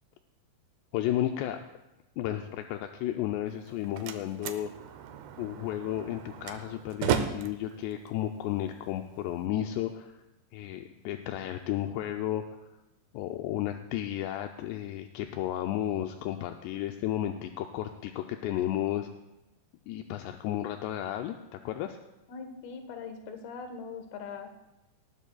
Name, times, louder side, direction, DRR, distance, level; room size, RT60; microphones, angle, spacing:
voice 1, 0.9-1.6 2.2-4.7 5.4-10.2 10.5-12.4 13.1-19.1 19.9-22.0, left 12 dB, 85° left, 5 dB, 2.7 m, -33 dB
Slam, 3.5-9.5, right 8 dB, 80° right, 2.3 m, -36 dB
voice 2, 22.3-24.5, left 5 dB, 65° left, 5 dB, 2.9 m, -41 dB
19.5 x 15.5 x 2.3 m, 0.96 s
omnidirectional pair, 5.1 m